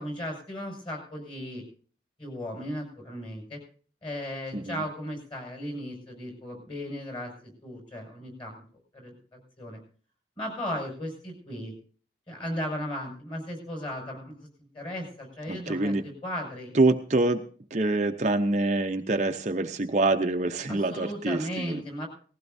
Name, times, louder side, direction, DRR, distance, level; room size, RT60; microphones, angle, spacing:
voice 1, 0.0-1.6 2.2-3.6 4.0-8.6 8.9-9.8 10.4-11.7 12.3-14.5 14.7-16.7 20.7-22.1, equal, 30° left, 2 dB, 5.8 m, -36 dB
voice 2, 15.5-16.0 16.7-17.4 17.7-21.8, right 2 dB, 40° right, 6 dB, 0.6 m, -25 dB
19.0 x 15.5 x 2.6 m, 0.43 s
head